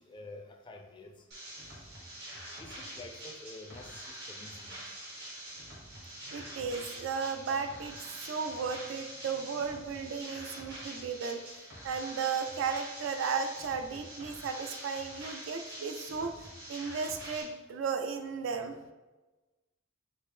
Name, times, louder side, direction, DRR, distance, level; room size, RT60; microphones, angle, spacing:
voice 1, 0.1-1.1 2.6-4.8, left 2 dB, 25° left, 3 dB, 0.3 m, -48 dB
sound 1, 1.3-17.4, right 1 dB, 60° right, 1.0 m, -45 dB
voice 2, 6.3-8.0 8.2-11.4 11.8-16.3 16.7-18.8, right 5 dB, 75° right, 7 dB, 0.4 m, -35 dB
4.4 x 2.0 x 3.2 m, 1.1 s
head